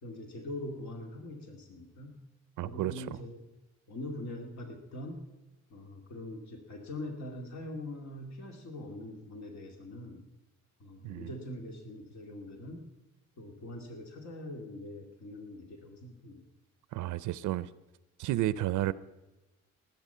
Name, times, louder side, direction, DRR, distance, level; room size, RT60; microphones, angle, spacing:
voice 1, 0.0-2.2 2.6-3.4 3.9-5.3 5.7-10.3 10.8-12.8 13.4-16.4, left 1 dB, 65° left, 2.4 m, -43 dB
voice 2, 2.6-3.0 11.0-11.3 16.9-17.7 18.2-18.9, right 14 dB, 80° right, 0.6 m, -31 dB
19.0 x 8.5 x 5.6 m
cardioid pair, 90°, 30 cm